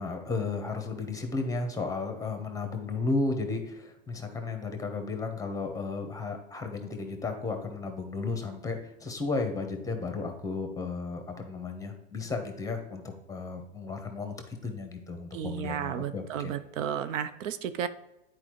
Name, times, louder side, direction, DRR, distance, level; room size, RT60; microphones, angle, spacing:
voice 1, 0.0-14.4 14.6-16.5, left 3 dB, 10° left, 5 dB, 1.1 m, -34 dB
voice 2, 15.3-17.9, right 9 dB, 80° right, 12 dB, 0.6 m, -33 dB
9.7 x 4.7 x 3.1 m, 0.95 s
hypercardioid pair, 105°, 38 cm